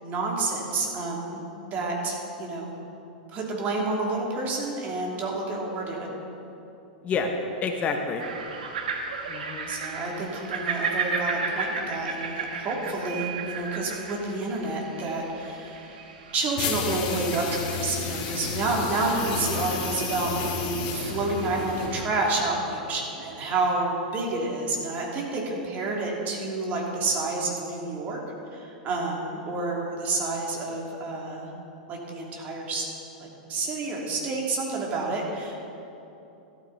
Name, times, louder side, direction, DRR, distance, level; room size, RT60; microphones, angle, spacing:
voice 1, 0.0-2.7 3.3-6.1 9.7-16.0 16.3-28.2 28.5-31.5 31.9-32.9 33.5-35.6, right 3 dB, 35° right, -2 dB, 3.1 m, -29 dB
voice 2, 7.6-8.2 9.3-9.7, left 5 dB, 30° left, 3 dB, 1.1 m, -28 dB
sound 1, 8.2-22.5, right 4 dB, 75° right, 1.5 m, -35 dB
sound 2, 16.6-22.2, left 6 dB, 50° left, 2.3 m, -31 dB
13.5 x 13.0 x 4.2 m, 2.9 s
hypercardioid pair, 105°, 5 cm